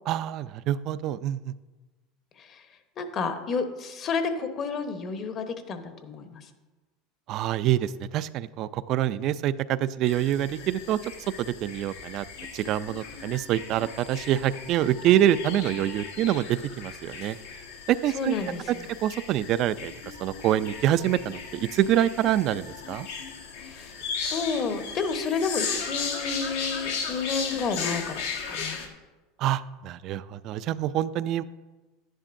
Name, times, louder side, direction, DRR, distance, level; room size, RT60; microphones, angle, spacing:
voice 1, 0.1-1.5 7.3-11.0 11.4-12.3 12.5-17.4 17.9-18.3 19.0-19.9 20.2-23.1 29.4-31.4, right 12 dB, 55° right, 16 dB, 0.4 m, -26 dB
voice 2, 3.0-6.5 18.1-18.9 23.6-24.0 24.3-28.8, left 5 dB, 40° left, 7 dB, 1.1 m, -31 dB
sound 1, 10.1-28.9, left 6 dB, 80° left, 1.4 m, -36 dB
10.5 x 10.0 x 2.6 m, 1.2 s
supercardioid pair, 100°, 0 cm